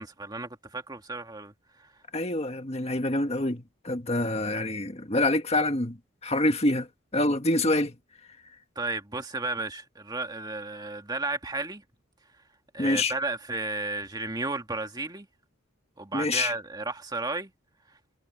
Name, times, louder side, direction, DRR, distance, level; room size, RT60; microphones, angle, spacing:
voice 1, 0.0-1.5 8.8-11.8 12.7-15.3 16.0-17.5, right 2 dB, 20° right, 2.1 m, -33 dB
voice 2, 2.1-6.0 6.2-6.9 7.1-7.9 12.8-13.1 16.1-16.5, left 2 dB, 30° left, 1.6 m, -26 dB
head